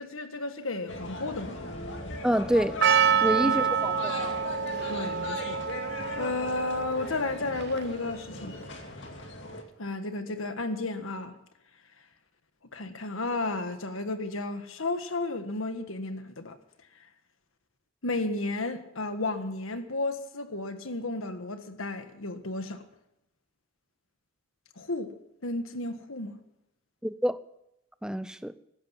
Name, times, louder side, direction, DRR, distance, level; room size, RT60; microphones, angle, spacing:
voice 1, 0.0-1.6 3.4-3.5 4.9-5.6 6.2-8.6 9.8-11.3 12.7-16.6 18.0-22.8 24.8-25.2 25.4-26.4, left 2 dB, 85° left, 1.6 m, -33 dB
sound 1, 0.9-9.6, left 1 dB, 60° left, 2.2 m, -38 dB
voice 2, 2.2-2.8 3.2-4.1 27.0-27.4 28.0-28.5, equal, 5° right, 0.5 m, -27 dB
Percussion, 2.8-8.0, right 7 dB, 50° right, 0.7 m, -27 dB
16.0 x 12.0 x 7.2 m
head